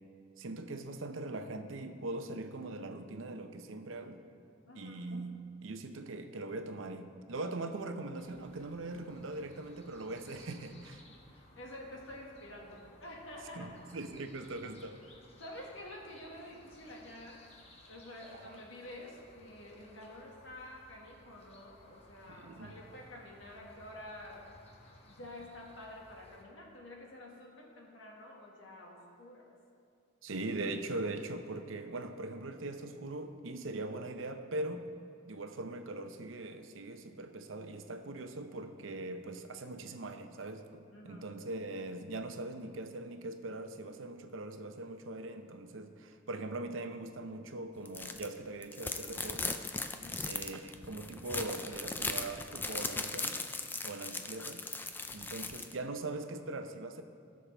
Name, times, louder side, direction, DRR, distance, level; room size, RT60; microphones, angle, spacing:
voice 1, 0.4-4.2 4.7-11.0 13.5-15.0 18.3-18.6 22.3-22.7 30.2-34.8 35.3-49.6 50.2-53.4 53.8-54.7 55.1-57.0, right 2 dB, 90° right, 7 dB, 0.7 m, -41 dB
voice 2, 4.7-5.0 11.6-13.8 15.4-17.5 17.9-24.4 25.0-29.5 40.9-41.3 50.0-50.3, left 1 dB, 80° left, -2 dB, 1.8 m, -49 dB
sound 1, 8.2-26.4, left 1 dB, 30° left, 1.1 m, -59 dB
sound 2, 47.8-48.3 48.6-55.7, left 3 dB, 10° left, 0.3 m, -38 dB
16.5 x 6.4 x 3.4 m, 2.3 s
head